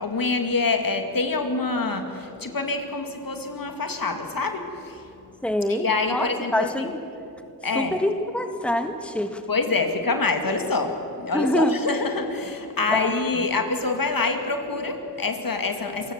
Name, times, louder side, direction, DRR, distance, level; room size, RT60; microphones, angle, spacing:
voice 1, 0.0-5.1 5.7-6.9 7.6-7.9 9.5-16.1, left 3 dB, 60° left, 5 dB, 2.4 m, -26 dB
voice 2, 5.4-7.0 7.8-9.4 11.3-11.8 12.9-13.1, left 1 dB, 5° left, 6 dB, 1.8 m, -25 dB
28.0 x 16.0 x 7.5 m, 2.8 s
cardioid pair, 50°, 38 cm